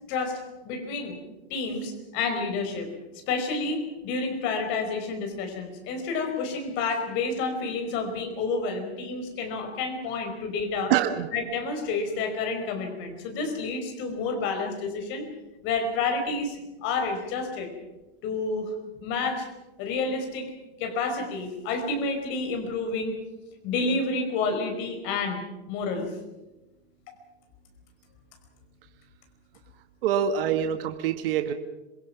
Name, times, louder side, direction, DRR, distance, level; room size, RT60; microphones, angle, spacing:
voice 1, 0.1-0.4 0.6-1.2 1.5-2.9 3.3-10.9 11.3-15.2 15.6-17.7 18.2-18.7 19.0-19.5 19.8-20.5 20.8-23.2 23.6-25.4 25.7-26.1 27.1-27.2, left 4 dB, 35° left, 5 dB, 5.1 m, -29 dB
voice 2, 10.9-11.3 30.0-31.5, right 9 dB, 60° right, 7 dB, 1.7 m, -25 dB
26.5 x 21.5 x 5.9 m, 1.0 s
supercardioid pair, 150°, 32 cm